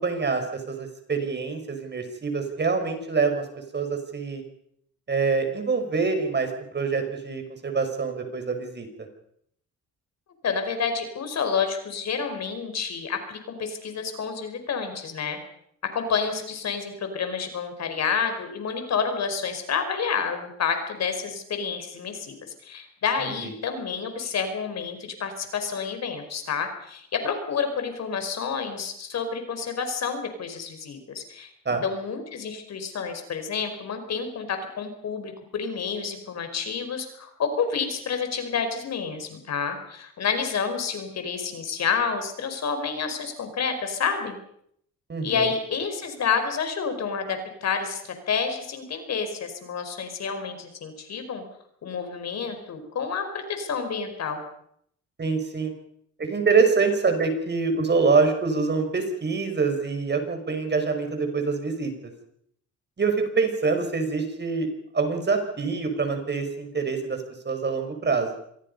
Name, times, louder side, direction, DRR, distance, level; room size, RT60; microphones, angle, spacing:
voice 1, 0.0-3.5 3.7-4.4 5.1-8.9 23.2-23.5 31.7-31.8 45.1-45.5 55.2-55.7 56.2-61.9 63.0-64.7 64.9-67.2 67.4-68.3, right 4 dB, 35° right, 6 dB, 5.7 m, -25 dB
voice 2, 10.4-15.4 15.8-22.3 22.6-31.5 31.8-44.4 45.2-51.4 51.8-54.4, left 6 dB, 60° left, 7 dB, 5.1 m, -29 dB
26.5 x 22.5 x 5.5 m, 0.70 s
cardioid pair, 90°, 30 cm